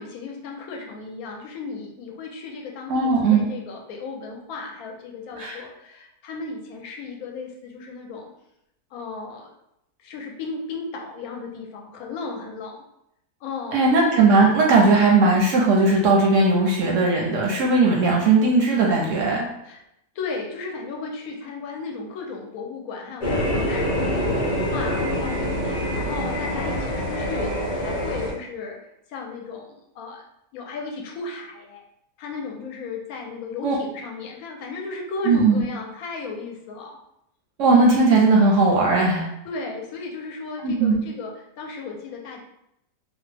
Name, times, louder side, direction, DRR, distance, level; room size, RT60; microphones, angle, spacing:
voice 1, 0.0-8.3 8.9-9.5 10.0-12.8 13.4-13.8 19.6-19.8 20.1-30.2 30.5-31.8 32.2-37.0 39.1-42.4, left 4 dB, 70° left, 1 dB, 1.0 m, -35 dB
voice 2, 2.9-3.5 5.4-5.6 13.7-19.5 33.6-33.7 35.3-35.6 37.6-39.3 40.6-41.0, right 3 dB, 65° right, -1 dB, 0.8 m, -18 dB
sound 1, 23.2-28.3, equal, 40° left, 0.6 m, -25 dB
2.9 x 2.0 x 3.3 m, 0.81 s
omnidirectional pair, 1.7 m